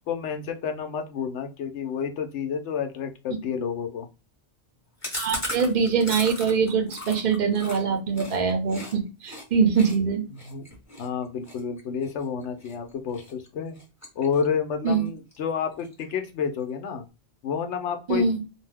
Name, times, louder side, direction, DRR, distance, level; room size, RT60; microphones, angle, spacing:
voice 1, 0.1-4.1 10.3-10.7 11.0-13.8 14.2-17.0 17.4-18.2, left 7 dB, 80° left, 6 dB, 0.9 m, -30 dB
Chewing mastication, 5.0-8.9 9.2-9.4 9.7-12.7 13.1-13.5 13.7-14.6 14.9-15.0 15.3-15.4 15.7-16.3, left 1 dB, 15° left, 1.0 m, -37 dB
voice 2, 5.2-10.3 14.8-15.1 18.1-18.4, right 5 dB, 50° right, 3 dB, 0.7 m, -23 dB
2.7 x 2.1 x 3.2 m, 0.29 s
omnidirectional pair, 1.2 m